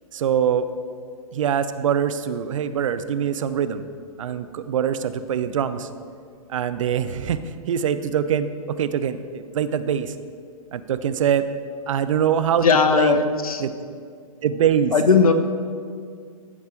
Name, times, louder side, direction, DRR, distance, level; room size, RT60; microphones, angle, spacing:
voice 1, 0.1-0.7 1.3-3.8 4.2-5.9 6.5-7.4 7.7-10.1 10.7-11.4 11.9-12.7 12.9-13.2 13.6-13.7 14.4-14.9, right 8 dB, 60° right, 12 dB, 0.6 m, -23 dB
voice 2, 12.6-13.6 14.9-15.3, left 5 dB, 75° left, 8 dB, 1.0 m, -17 dB
14.5 x 5.4 x 4.4 m, 2.2 s
figure-of-eight pair, 115°, 19 cm